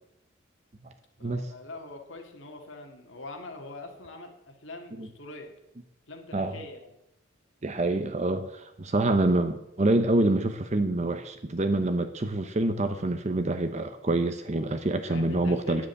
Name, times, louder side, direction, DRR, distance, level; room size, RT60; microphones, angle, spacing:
voice 1, 1.2-5.5 6.1-7.0 15.1-15.9, left 2 dB, 75° left, 3 dB, 2.0 m, -43 dB
voice 2, 7.6-15.8, right 2 dB, 35° right, 8 dB, 0.7 m, -26 dB
9.7 x 7.7 x 8.1 m, 0.84 s
head